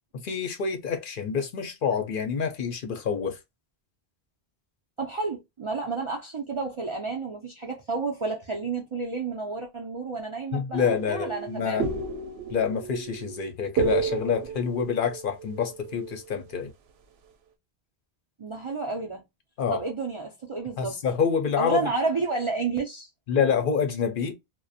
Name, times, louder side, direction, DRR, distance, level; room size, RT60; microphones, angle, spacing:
voice 1, 0.2-3.4 10.5-11.8 12.5-16.7 19.6-19.8 20.8-21.9 23.3-24.3, left 6 dB, 60° left, 0.7 m, -27 dB
voice 2, 5.0-11.9 18.4-19.2 19.7-21.0 21.6-23.1, right 3 dB, 45° right, 0.4 m, -31 dB
sound 1, 10.7-16.3, right 6 dB, 80° right, 0.8 m, -32 dB
2.4 x 2.1 x 2.5 m
omnidirectional pair, 1.1 m